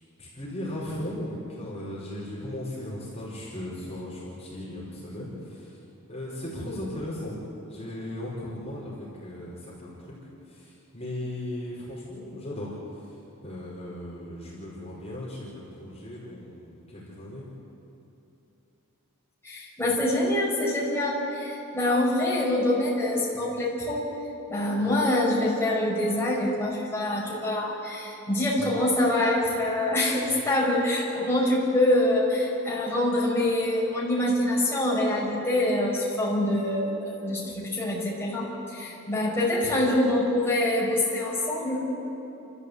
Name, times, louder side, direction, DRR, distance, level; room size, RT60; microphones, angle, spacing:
voice 1, 0.2-5.8 6.1-7.4 7.7-10.2 10.5-13.2 13.4-17.4, left 1 dB, 30° left, -6 dB, 5.0 m, -37 dB
voice 2, 19.4-24.1 24.5-41.9, left 1 dB, 10° left, -7 dB, 5.6 m, -25 dB
29.5 x 14.0 x 8.3 m, 3.0 s
head